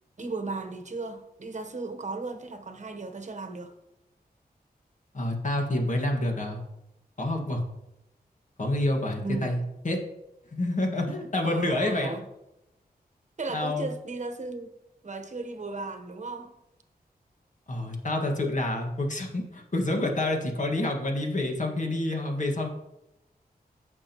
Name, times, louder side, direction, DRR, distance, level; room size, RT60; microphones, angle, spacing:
voice 1, 0.2-3.7 9.1-9.6 11.4-12.3 13.4-14.7 15.0-16.5, right 3 dB, 45° right, 1.1 m, -35 dB
voice 2, 5.1-6.6 7.2-7.6 8.6-9.6 9.8-10.0 10.5-12.1 13.5-13.9 17.7-22.7, left 1 dB, 50° left, 1.9 m, -28 dB
15.0 x 6.2 x 3.1 m
wide cardioid pair, 100°, 16 cm